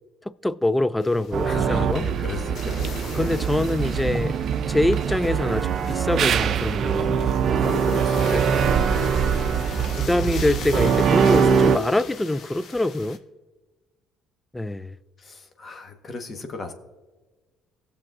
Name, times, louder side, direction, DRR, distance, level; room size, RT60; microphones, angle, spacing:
voice 1, 0.4-2.0 3.1-4.3 4.7-7.3 8.3-8.7 10.0-13.2 14.5-15.0, left 1 dB, 10° left, 0.4 m, -24 dB
sound 1, 1.0-13.2, left 6 dB, 60° left, 0.9 m, -41 dB
sound 2, 1.3-11.8, right 7 dB, 55° right, 0.5 m, -22 dB
voice 2, 1.4-3.5 7.6-9.1 15.2-16.7, left 4 dB, 40° left, 1.3 m, -35 dB
sound 3, 3.0-3.7 4.1-4.4 5.1-6.1 6.6-7.7, right 4 dB, 25° right, 2.3 m, -47 dB
18.0 x 7.1 x 2.6 m
supercardioid pair, 75°, 0 cm